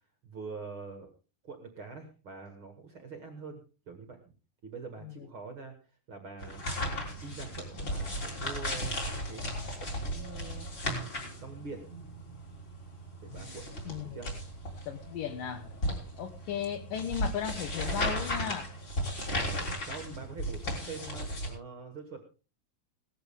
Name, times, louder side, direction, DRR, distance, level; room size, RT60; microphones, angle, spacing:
voice 1, 0.2-1.1 1.4-3.6 3.9-4.3 4.6-5.7 6.1-6.6 7.2-9.4 9.8-10.7 11.4-11.9 13.2-13.7 14.0-14.3 19.3-22.3, right 4 dB, 45° right, 6 dB, 1.9 m, -44 dB
sound 1, 6.4-21.5, equal, 30° left, 4.2 m, -36 dB
voice 2, 13.9-14.2 14.9-15.7 16.2-18.7, left 8 dB, 70° left, 9 dB, 2.4 m, -36 dB
17.5 x 13.0 x 3.7 m, 0.34 s
omnidirectional pair, 4.7 m